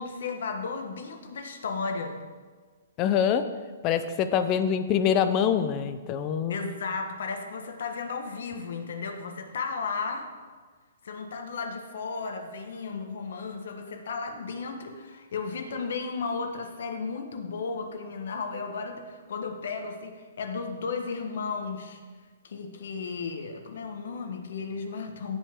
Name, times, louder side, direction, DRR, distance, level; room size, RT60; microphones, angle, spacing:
voice 1, 0.0-2.2 6.5-10.3 11.0-22.0 22.4-25.4, left 4 dB, 70° left, 5 dB, 1.4 m, -34 dB
voice 2, 3.0-3.5 3.8-6.6, left 8 dB, 30° left, 10 dB, 0.6 m, -25 dB
16.0 x 5.5 x 3.7 m, 1.5 s
hypercardioid pair, 150°, 0 cm